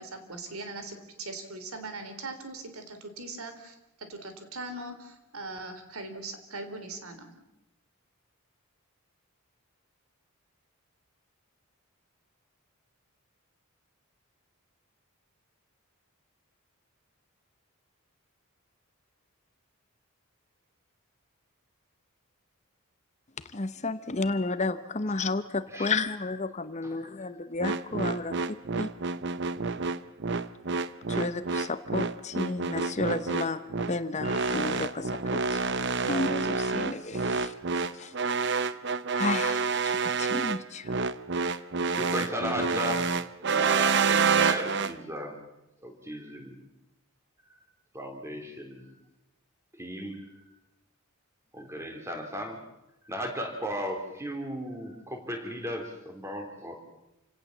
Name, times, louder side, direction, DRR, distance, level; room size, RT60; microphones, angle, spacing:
voice 1, 0.0-7.3, right 2 dB, 75° right, 8 dB, 3.3 m, -40 dB
voice 2, 23.5-28.3 28.8-28.9 31.1-35.6 36.0-38.1 39.2-40.9, left 3 dB, 30° left, 12 dB, 0.8 m, -32 dB
sound 1, 27.6-44.9, right 4 dB, 50° right, 0.8 m, -28 dB
voice 3, 41.9-43.1 43.4-45.4 45.8-46.6 47.5-47.6 47.9-48.9 49.7-50.5 51.5-52.6 53.0-56.8, equal, 10° right, 4 dB, 3.3 m, -36 dB
28.0 x 17.5 x 7.2 m, 0.91 s
head